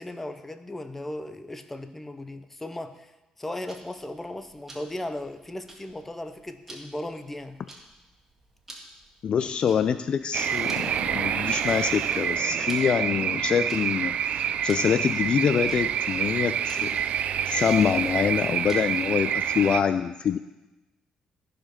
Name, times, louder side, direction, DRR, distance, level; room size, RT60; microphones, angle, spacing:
voice 1, 0.0-7.6, left 1 dB, 10° left, 9 dB, 0.7 m, -37 dB
Tick-tock, 3.7-19.1, right 1 dB, 15° right, 1.8 m, -51 dB
voice 2, 9.2-16.9 17.5-20.4, left 7 dB, 45° left, 11 dB, 0.3 m, -25 dB
sound 1, 10.3-19.8, right 9 dB, 60° right, 0.4 m, -27 dB
14.0 x 5.0 x 5.9 m, 1.0 s
cardioid pair, 130°, 2 cm